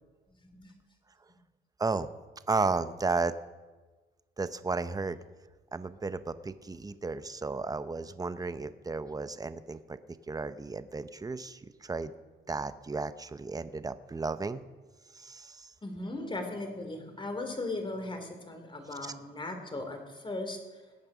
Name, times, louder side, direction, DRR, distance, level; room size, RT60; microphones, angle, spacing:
voice 1, 1.8-2.1 2.5-3.3 4.4-5.2 5.7-10.0 10.3-12.1 12.5-14.6 15.1-15.7 19.0-19.1, right 3 dB, 20° right, 12 dB, 0.8 m, -33 dB
voice 2, 15.8-20.8, left 2 dB, 25° left, 5 dB, 3.0 m, -38 dB
20.0 x 8.7 x 6.3 m, 1.3 s
cardioid pair, 90°, 20 cm